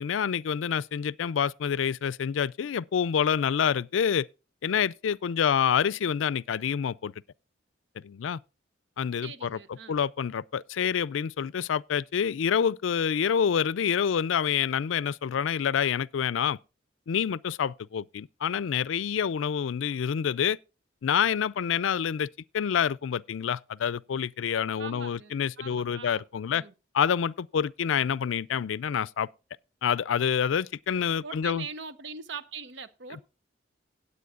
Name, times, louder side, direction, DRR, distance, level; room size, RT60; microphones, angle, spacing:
voice 1, 0.0-4.3 4.6-7.1 8.0-8.4 9.0-16.6 17.1-20.6 21.0-26.6 26.9-29.3 29.8-31.7, left 7 dB, 85° left, 0.4 m, -27 dB
voice 2, 9.2-10.0 24.8-26.2 26.5-26.7 31.2-33.2, right 5 dB, 65° right, 0.9 m, -41 dB
18.0 x 8.4 x 2.4 m
head